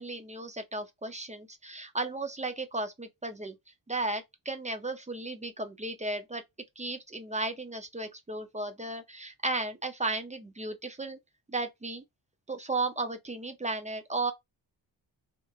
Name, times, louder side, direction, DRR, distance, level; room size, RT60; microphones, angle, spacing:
voice 1, 0.0-3.5 3.9-6.4 6.8-11.2 11.5-12.0 12.5-14.3, right 2 dB, 15° right, 0.4 m, -34 dB
2.9 x 2.3 x 2.3 m
wide cardioid pair, 120°, 45 cm